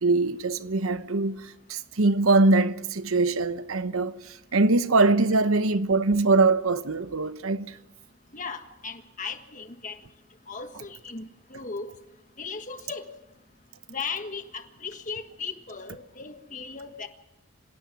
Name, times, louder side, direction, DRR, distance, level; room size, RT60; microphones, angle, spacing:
voice 1, 0.0-7.8, right 3 dB, 90° right, 1.0 m, -23 dB
voice 2, 8.3-10.0 10.5-11.9 12.4-13.1 13.9-17.1, left 5 dB, 40° left, 1.6 m, -37 dB
26.0 x 17.0 x 6.2 m
head